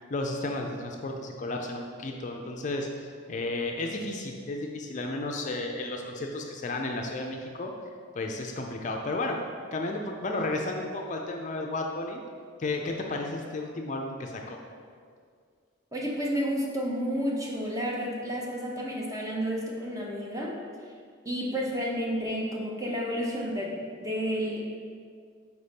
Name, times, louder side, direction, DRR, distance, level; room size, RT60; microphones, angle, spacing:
voice 1, 0.1-7.7 8.1-9.4 9.7-12.2 12.6-14.6, left 2 dB, 40° left, 2 dB, 0.4 m, -33 dB
voice 2, 15.9-20.6 21.2-24.6, equal, 15° right, -2 dB, 0.7 m, -31 dB
4.5 x 4.1 x 5.1 m, 2.1 s
head